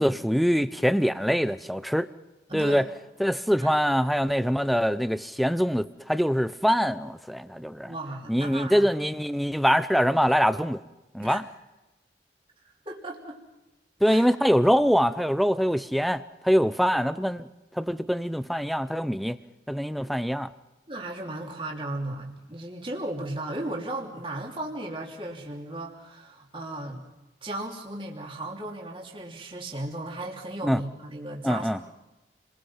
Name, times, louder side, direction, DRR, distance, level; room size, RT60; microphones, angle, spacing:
voice 1, 0.0-2.1 2.5-2.8 3.2-7.9 8.3-10.8 11.1-11.4 14.0-17.5 17.8-19.4 19.7-20.5 30.6-30.8 31.4-31.8, equal, ahead, 0.7 m, -24 dB
voice 2, 2.5-2.8 3.6-3.7 7.8-8.9 11.2-11.4 12.8-13.4 14.0-14.3 20.9-27.0 27.4-31.9, right 1 dB, 30° right, 3.2 m, -36 dB
29.5 x 22.0 x 5.8 m
head